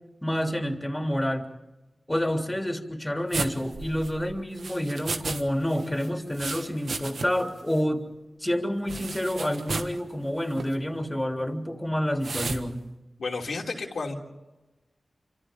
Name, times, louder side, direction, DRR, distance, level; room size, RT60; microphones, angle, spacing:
voice 1, 0.2-1.5 2.1-8.1 8.4-12.8, equal, 15° left, 3 dB, 3.4 m, -28 dB
sound 1, 3.3-5.4 5.7-7.5 7.8-7.9 8.9-10.0 10.5-10.8 12.2-12.6, right 3 dB, 85° right, 1.4 m, -34 dB
voice 2, 13.2-14.2, left 3 dB, 90° left, -1 dB, 3.2 m, -31 dB
28.0 x 26.0 x 3.8 m, 1.1 s
cardioid pair, 50°, 0 cm